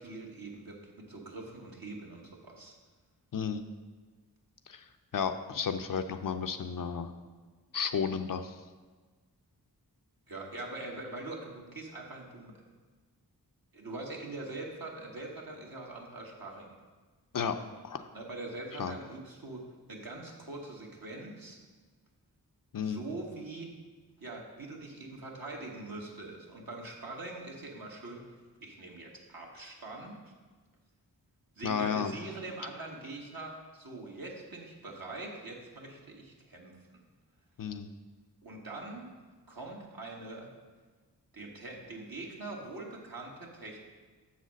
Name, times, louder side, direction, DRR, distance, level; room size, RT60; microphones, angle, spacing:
voice 1, 0.0-2.7 10.3-12.5 13.7-16.8 18.1-21.6 22.8-23.7 24.2-28.3 28.6-30.2 31.6-37.0 38.4-39.1 39.5-40.5 41.3-43.8, right 2 dB, 60° right, -1 dB, 1.6 m, -43 dB
voice 2, 3.3-3.6 4.7-4.8 5.1-7.1 7.7-8.6 17.3-17.6 17.8-18.0 18.8-18.9 22.7-23.0 31.6-32.1 37.6-37.9, left 6 dB, 55° left, 8 dB, 0.5 m, -32 dB
7.2 x 4.1 x 6.3 m, 1.4 s
cardioid pair, 40°, 40 cm